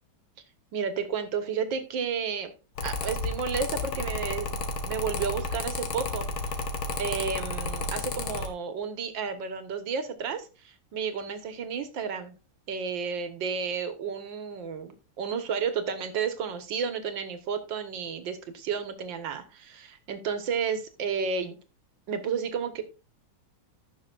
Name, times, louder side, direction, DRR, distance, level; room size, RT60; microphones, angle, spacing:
voice 1, 0.7-2.5 2.8-6.6 7.0-12.3 12.7-21.6 22.1-22.8, right 6 dB, 65° right, 9 dB, 2.0 m, -32 dB
Mechanical fan, 2.8-8.5, left 3 dB, 75° left, 2.1 m, -32 dB
15.5 x 6.3 x 2.4 m, 0.32 s
omnidirectional pair, 2.3 m